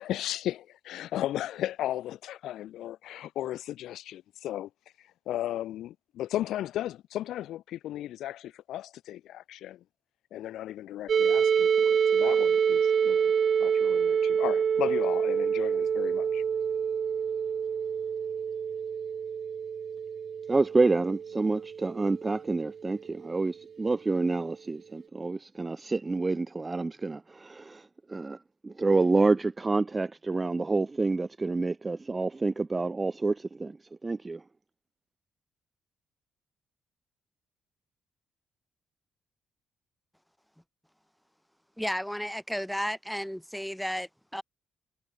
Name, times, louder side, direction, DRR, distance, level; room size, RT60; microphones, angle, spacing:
voice 1, 0.0-4.7 5.0-9.8 10.3-13.3 13.6-16.4, left 13 dB, 80° left, 1.9 m, -35 dB
sound 1, 11.1-22.8, right 7 dB, 50° right, 2.0 m, -27 dB
voice 2, 20.5-27.8 28.1-28.4 28.6-33.8 34.0-34.4, right 3 dB, 25° right, 0.4 m, -28 dB
voice 3, 41.8-44.4, equal, ahead, 4.2 m, -33 dB
cardioid pair, 90°, 0 cm